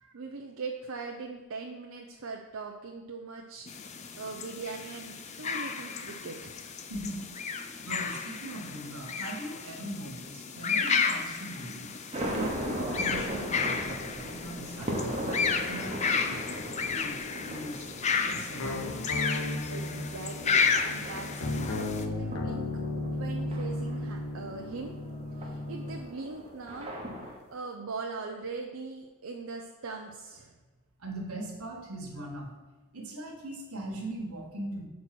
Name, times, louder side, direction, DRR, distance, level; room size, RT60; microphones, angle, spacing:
voice 1, 0.1-6.6 18.3-18.5 19.4-22.7 23.0-24.9 25.3-30.6, right 4 dB, 65° right, 1 dB, 0.6 m, -41 dB
sound 1, 3.7-22.0, left 5 dB, 30° left, 0.4 m, -32 dB
voice 2, 7.8-11.9 12.3-13.9 14.2-16.4 16.8-17.2 17.4-17.9 18.2-19.1 31.0-32.5 32.9-34.9, right 1 dB, 85° right, 1 dB, 1.5 m, -40 dB
sound 2, 12.1-27.4, equal, 25° right, 1.1 m, -39 dB
sound 3, 18.6-26.0, left 2 dB, 70° left, 0.7 m, -35 dB
6.1 x 4.2 x 5.9 m, 1.2 s
head